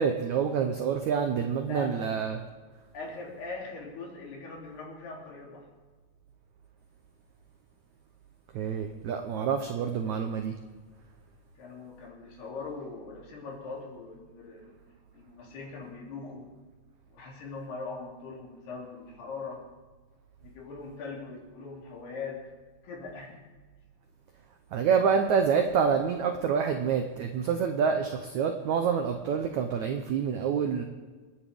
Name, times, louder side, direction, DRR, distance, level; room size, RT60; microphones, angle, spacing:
voice 1, 0.0-2.4 8.5-10.5 24.7-30.8, right 6 dB, 85° right, 5 dB, 1.6 m, -27 dB
voice 2, 1.6-1.9 2.9-5.7 11.6-14.8 15.1-16.5 17.1-19.6 20.4-22.4 22.8-23.4, left 4 dB, 85° left, -2 dB, 5.1 m, -41 dB
28.0 x 10.0 x 3.6 m, 1.4 s
omnidirectional pair, 4.5 m